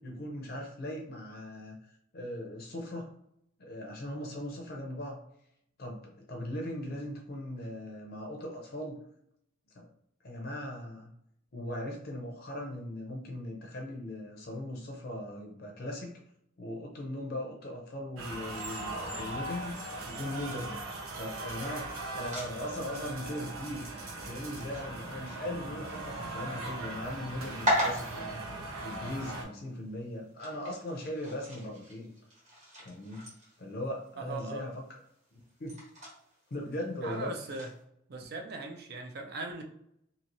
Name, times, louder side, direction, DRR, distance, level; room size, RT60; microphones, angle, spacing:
voice 1, 0.0-1.8 2.1-3.1 3.6-5.2 5.8-9.0 9.7-9.9 10.2-11.1 11.5-16.2 16.6-20.9 21.1-23.8 24.2-28.4 28.8-32.1 32.8-33.2 33.6-34.8 35.3-35.8 36.5-37.3, left 1 dB, 45° left, 0 dB, 0.5 m, -39 dB
sound 1, 18.2-29.4, right 2 dB, 85° right, 0.7 m, -40 dB
sound 2, 21.5-37.8, equal, 35° right, 1.0 m, -41 dB
voice 2, 34.2-34.7 37.0-37.7 38.1-39.6, right 3 dB, 50° right, 3 dB, 0.5 m, -39 dB
2.7 x 2.6 x 2.9 m, 0.76 s
head